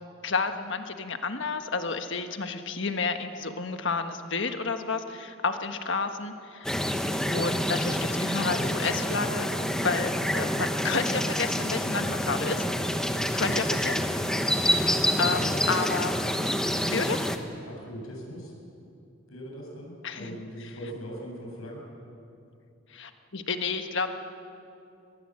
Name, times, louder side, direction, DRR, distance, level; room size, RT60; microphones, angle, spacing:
voice 1, 0.2-6.8 7.3-9.5 9.8-12.6 13.3-14.0 14.5-16.1 16.9-17.2 20.0-20.4 22.9-24.1, left 4 dB, 60° left, 6 dB, 1.4 m, -30 dB
sound 1, 6.6-17.4, equal, 5° left, 1.0 m, -27 dB
voice 2, 17.6-18.5 19.3-21.8, equal, 85° left, -2 dB, 7.6 m, -41 dB
22.5 x 21.5 x 7.8 m, 2.7 s
head